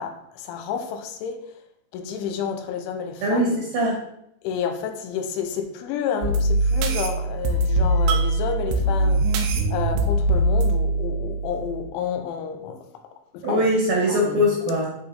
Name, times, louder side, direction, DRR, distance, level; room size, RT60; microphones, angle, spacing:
voice 1, 0.0-1.5 1.9-3.6 4.4-9.4 9.7-13.7 14.1-14.5, left 7 dB, 85° left, 3.1 m, -30 dB
voice 2, 3.2-4.0 13.4-14.9, equal, 65° right, 2.5 m, -21 dB
sound 1, 6.2-11.9, right 1 dB, 85° right, 3.3 m, -22 dB
10.5 x 3.8 x 3.9 m
omnidirectional pair, 5.5 m